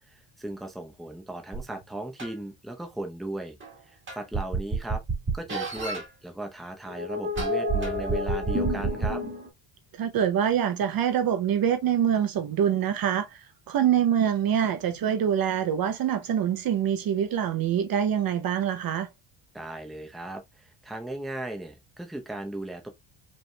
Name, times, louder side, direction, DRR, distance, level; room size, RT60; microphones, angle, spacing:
voice 1, 0.1-3.6 3.9-5.0 5.3-9.2 19.5-22.9, right 1 dB, ahead, 0.7 m, -37 dB
sound 1, 1.5-1.6 2.2-2.3 3.6-3.7 4.1-6.0 6.9-9.5, right 2 dB, 25° right, 1.7 m, -28 dB
voice 2, 10.0-13.4 13.7-19.1, right 9 dB, 45° right, 0.6 m, -25 dB
5.3 x 3.3 x 2.2 m
cardioid pair, 170°, 50 cm